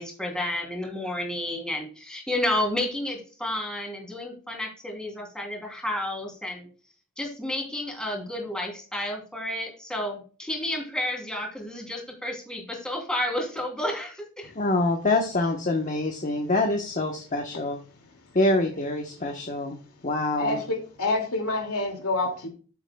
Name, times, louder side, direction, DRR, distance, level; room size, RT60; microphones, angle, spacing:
voice 1, 0.0-6.7 7.2-14.5, left 1 dB, 5° left, 0 dB, 3.2 m, -31 dB
voice 2, 14.5-17.8 18.3-19.8 20.0-20.6, left 2 dB, 35° left, 3 dB, 1.1 m, -25 dB
voice 3, 20.4-22.5, left 2 dB, 80° left, 3 dB, 2.4 m, -27 dB
13.5 x 7.7 x 2.3 m, 0.38 s
head